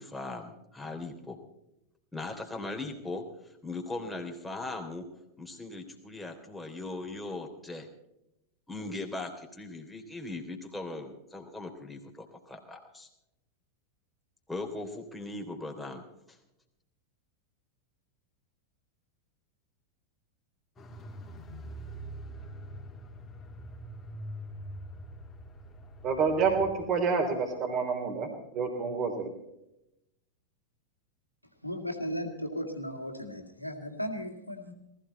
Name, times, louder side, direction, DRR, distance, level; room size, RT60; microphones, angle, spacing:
voice 1, 0.0-1.4 2.1-3.2 3.6-5.1 5.4-7.9 8.7-13.1 14.5-16.0, left 2 dB, 5° left, 2 dB, 3.2 m, -39 dB
Car, 20.8-26.9 27.2-27.3, equal, 20° left, 3.1 m, -44 dB
voice 2, 26.0-29.3, right 5 dB, 35° right, 4 dB, 3.5 m, -28 dB
voice 3, 31.6-34.7, equal, 90° left, 4 dB, 2.3 m, -36 dB
19.5 x 15.5 x 4.1 m, 0.85 s
figure-of-eight pair, 90°, 0 cm